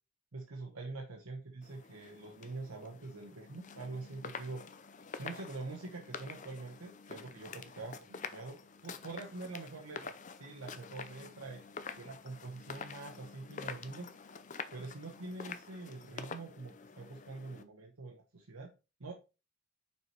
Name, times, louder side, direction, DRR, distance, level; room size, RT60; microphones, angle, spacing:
voice 1, 0.3-4.6 5.2-8.6 8.8-11.6 12.0-14.1 14.7-18.7 19.0-19.1, right 3 dB, 90° right, 2 dB, 1.0 m, -45 dB
sound 1, 1.6-17.6, left 5 dB, 35° left, 0.5 m, -48 dB
5.5 x 4.7 x 4.6 m, 0.30 s
head